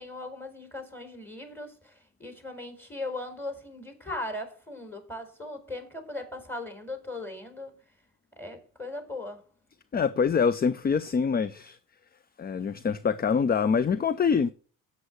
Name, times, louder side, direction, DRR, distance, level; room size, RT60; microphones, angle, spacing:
voice 1, 0.0-7.8 8.4-9.4, left 2 dB, 5° left, 4.4 m, -38 dB
voice 2, 9.9-11.8 12.4-14.5, left 6 dB, 25° left, 0.5 m, -25 dB
8.3 x 7.8 x 7.9 m
hypercardioid pair, 55°, 41 cm